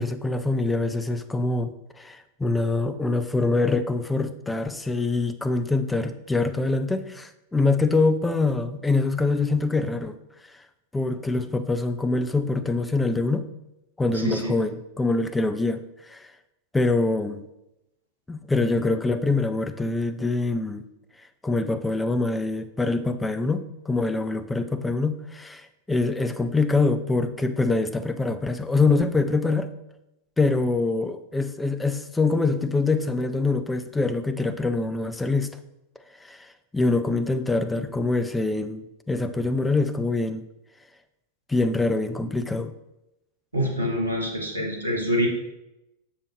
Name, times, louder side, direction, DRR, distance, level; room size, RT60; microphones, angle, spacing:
voice 1, 0.0-10.2 10.9-13.5 14.0-16.3 16.7-17.4 18.3-20.8 21.4-29.7 30.4-35.5 36.2-40.5 41.5-42.7, left 3 dB, 10° left, 10 dB, 0.5 m, -24 dB
voice 2, 14.1-14.5 43.5-45.3, equal, 80° right, 0 dB, 1.5 m, -26 dB
7.0 x 6.9 x 3.2 m, 0.90 s
figure-of-eight pair, 90°, 0 cm